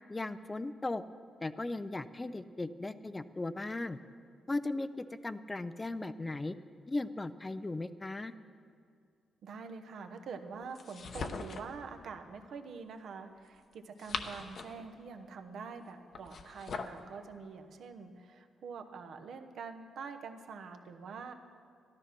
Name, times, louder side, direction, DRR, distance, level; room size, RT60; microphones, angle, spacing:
voice 1, 0.1-1.0 1.4-4.0 4.5-6.5 6.9-8.3, left 2 dB, 15° left, 13 dB, 0.4 m, -37 dB
voice 2, 9.4-21.3, right 5 dB, 65° right, 6 dB, 1.0 m, -45 dB
sound 1, 10.7-11.8 13.7-14.9 16.1-17.0, left 4 dB, 50° left, 0.8 m, -41 dB
13.5 x 12.5 x 6.0 m, 2.3 s
cardioid pair, 130°, 0 cm